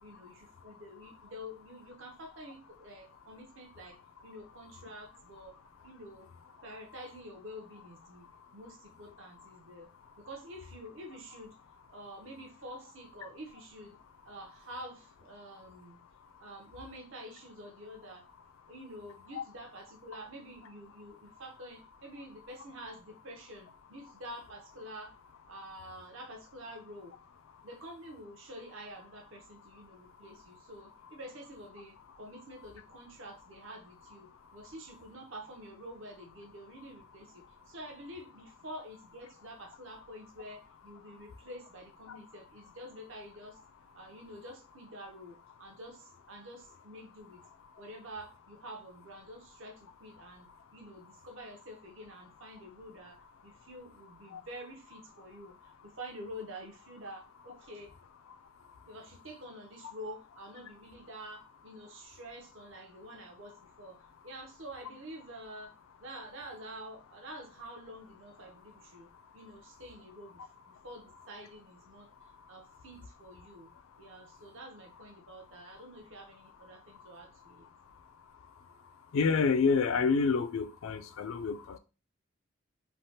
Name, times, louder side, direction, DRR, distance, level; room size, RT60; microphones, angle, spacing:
voice 1, 0.0-5.6 5.8-6.3 6.6-8.3 8.5-11.6 11.9-14.0 14.3-16.0 16.4-18.3 18.7-25.1 25.4-27.2 27.6-43.6 43.9-47.4 47.8-55.6 56.0-57.9 58.9-65.7 66.0-70.4 70.7-72.1 72.5-73.7 74.0-77.7, equal, 65° right, 0.6 m, -48 dB
voice 2, 79.1-81.8, left 5 dB, 75° left, 0.4 m, -28 dB
3.2 x 2.1 x 2.7 m
head